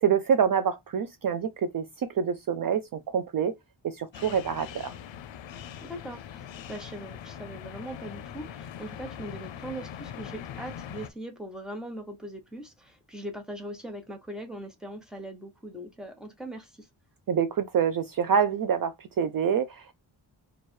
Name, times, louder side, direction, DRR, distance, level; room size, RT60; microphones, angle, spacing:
voice 1, 0.0-3.5 3.8-4.9 17.3-19.9, right 7 dB, 50° right, 0.4 m, -26 dB
sound 1, 4.1-11.1, left 9 dB, 80° left, 0.6 m, -42 dB
voice 2, 5.8-16.9, right 1 dB, ahead, 1.1 m, -40 dB
3.1 x 2.5 x 4.3 m
wide cardioid pair, 115°, 45 cm